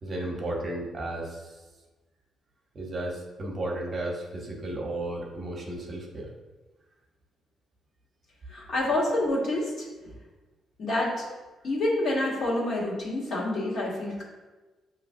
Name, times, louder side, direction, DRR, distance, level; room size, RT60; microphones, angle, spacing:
voice 1, 0.0-1.6 2.7-6.3, right 1 dB, 40° right, -1 dB, 0.9 m, -34 dB
voice 2, 8.5-9.8 10.8-11.3 11.6-14.2, left 1 dB, 60° left, -4 dB, 1.3 m, -27 dB
6.1 x 2.9 x 2.6 m, 1.2 s
cardioid pair, 90°, 0 cm